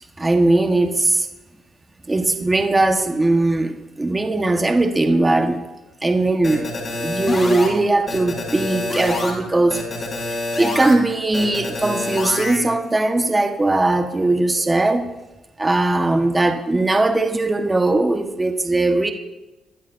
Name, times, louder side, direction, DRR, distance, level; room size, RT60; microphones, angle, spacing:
voice 1, 0.2-1.3 2.1-5.6 6.0-6.7 7.0-9.9 10.6-15.1 15.6-19.1, right 2 dB, 20° right, 4 dB, 1.3 m, -19 dB
sound 1, 6.4-7.7 8.1-9.3 9.7-10.9 11.3-12.6, left 2 dB, 40° left, 5.8 m, -26 dB
23.0 x 12.0 x 2.7 m, 1.0 s
cardioid pair, 90°, 0 cm